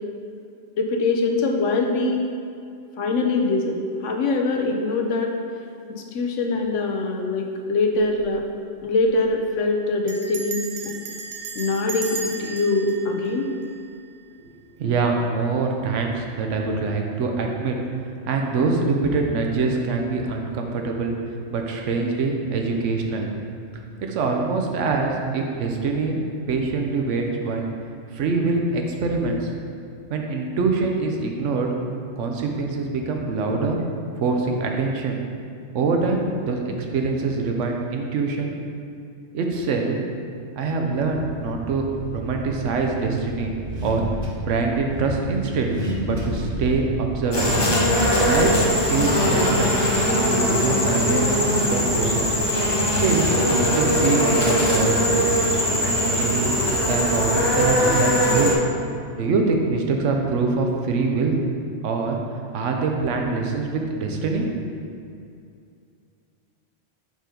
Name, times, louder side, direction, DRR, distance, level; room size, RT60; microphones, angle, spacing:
voice 1, 0.8-2.2 3.0-5.3 5.9-8.4 8.8-10.6 11.5-13.5, left 3 dB, 85° left, 2 dB, 1.0 m, -23 dB
Bell, 7.9-8.3 8.6-8.7 8.9-9.3 10.1-14.2, right 5 dB, 65° right, 0.8 m, -35 dB
voice 2, 14.8-17.7 18.3-21.1 21.5-23.3 24.0-26.2 26.5-27.7 28.1-29.5 30.1-31.7 32.2-33.8 34.2-35.2 35.7-38.5 39.3-40.0 40.6-41.9 42.1-43.5 43.8-44.0 44.4-45.7 46.0-47.5 48.2-48.5 48.9-49.7 50.0-52.3 53.0-55.2 55.8-56.5 56.8-58.5 59.1-61.4 61.8-62.2 62.5-64.7, right 4 dB, 85° right, 2 dB, 1.0 m, -24 dB
Car / Accelerating revving vroom, 41.0-50.2, equal, 40° right, 0.8 m, -31 dB
sound 1, 47.3-58.6, equal, 30° left, 0.5 m, -21 dB
5.3 x 3.8 x 5.0 m, 2.4 s
omnidirectional pair, 1.2 m